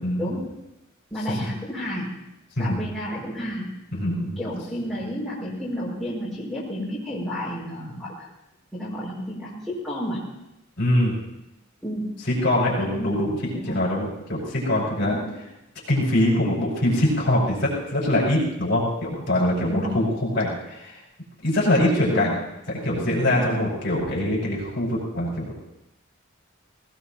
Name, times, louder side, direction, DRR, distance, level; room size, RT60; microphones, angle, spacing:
voice 1, 0.2-0.6 1.1-2.2 2.6-3.7 4.4-8.3 8.7-10.3 11.8-12.1 12.8-13.1 13.5-13.8 15.0-15.3 19.7-20.0 22.1-22.3 23.3-23.6, equal, ahead, -8 dB, 5.9 m, -31 dB
voice 2, 2.6-2.9 3.9-4.4 10.8-11.1 12.3-15.2 15.9-21.0 21.4-22.3 22.7-25.5, left 1 dB, 55° left, -4 dB, 5.6 m, -23 dB
19.5 x 19.0 x 3.0 m, 0.92 s
head